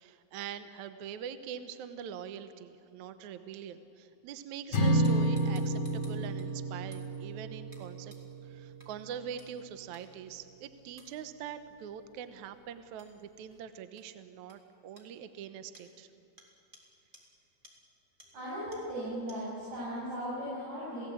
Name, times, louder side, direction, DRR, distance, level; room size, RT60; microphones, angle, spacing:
voice 1, 0.0-8.1 8.4-16.1, right 8 dB, 65° right, 10 dB, 2.0 m, -43 dB
sound 1, 4.7-9.1, right 1 dB, 60° left, 5.9 m, -31 dB
sound 2, 5.0-6.5 6.9-7.1 7.7-7.8 8.1-8.2 8.8-8.9 9.4-9.5 9.9-10.0 11.0-11.1 13.0-13.1 14.0-14.1 14.5-14.6 15.0-15.1 15.7-15.9 16.4-16.5 16.7-16.8 17.1-17.2 17.6-17.7 18.2-18.3 18.7-18.8 19.3-19.4, right 1 dB, 15° right, 3.4 m, -56 dB
voice 2, 18.3-21.0, equal, 50° right, -7 dB, 8.3 m, -37 dB
29.0 x 18.0 x 8.6 m, 2.8 s
omnidirectional pair, 4.3 m